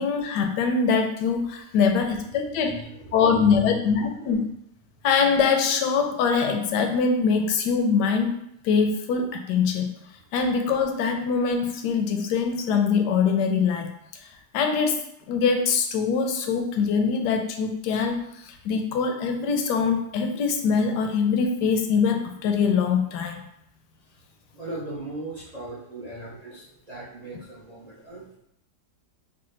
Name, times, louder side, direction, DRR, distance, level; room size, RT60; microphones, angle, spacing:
voice 1, 0.0-2.7 3.1-4.5 5.0-8.4 8.6-9.9 10.3-13.9 14.5-15.0 15.3-23.4, left 5 dB, 75° left, 4 dB, 1.1 m, -23 dB
voice 2, 2.6-4.2 10.2-10.3 24.0-24.2 24.5-28.4, right 1 dB, 50° right, -7 dB, 0.4 m, -38 dB
4.7 x 2.2 x 3.1 m, 0.76 s
omnidirectional pair, 1.9 m